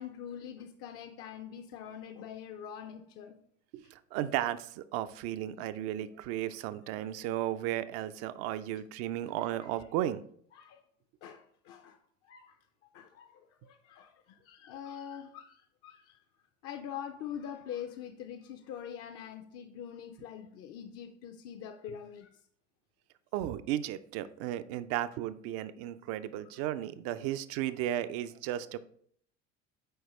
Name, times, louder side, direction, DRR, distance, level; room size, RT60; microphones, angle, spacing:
voice 1, 0.0-3.4 9.2-9.9 10.5-10.8 11.2-12.0 12.2-12.6 12.9-16.2 16.6-22.4, left 9 dB, 40° left, 7 dB, 0.5 m, -44 dB
voice 2, 3.7-10.2 23.3-28.8, right 12 dB, 40° right, 14 dB, 0.4 m, -34 dB
8.0 x 4.6 x 3.1 m, 0.64 s
figure-of-eight pair, 75°, 37 cm